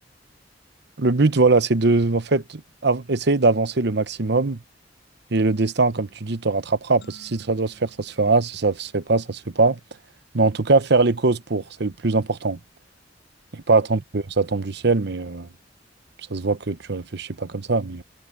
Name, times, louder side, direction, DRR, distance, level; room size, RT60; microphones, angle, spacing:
voice 1, 1.0-4.6 5.3-9.8 10.3-12.6 13.5-15.5 16.3-18.0, right 3 dB, 65° right, 1.0 m, -21 dB
sound 1, 7.0-9.7, left 1 dB, 90° left, 6.5 m, -55 dB
head